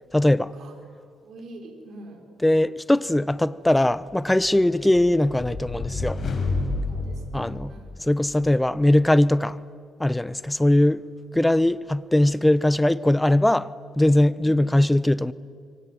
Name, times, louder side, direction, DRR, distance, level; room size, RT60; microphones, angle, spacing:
voice 1, 0.1-0.5 2.4-6.2 7.3-7.5 8.0-9.6 10.0-11.0 11.3-13.7 14.0-15.3, left 1 dB, 10° left, 0.9 m, -20 dB
voice 2, 1.2-2.3 6.9-8.0 11.5-11.7 14.4-14.7, right 1 dB, 65° right, 4.9 m, -44 dB
sound 1, 4.4-8.3, left 3 dB, 45° left, 5.9 m, -30 dB
27.0 x 24.0 x 9.4 m
cardioid pair, 90°, 0 cm